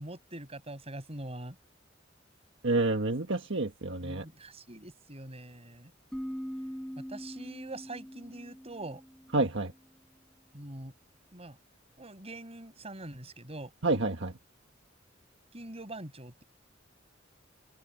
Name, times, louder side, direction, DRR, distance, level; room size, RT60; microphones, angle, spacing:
voice 1, 0.0-1.6 4.0-5.9 7.0-9.0 10.5-10.9 11.3-11.6 12.0-13.7 15.5-16.4, right 2 dB, 35° right, 6.5 m, -43 dB
voice 2, 2.6-4.2 9.3-9.7 13.8-14.3, right 2 dB, 70° right, 1.6 m, -28 dB
sound 1, 6.1-9.7, equal, 5° left, 5.0 m, -42 dB
open air
head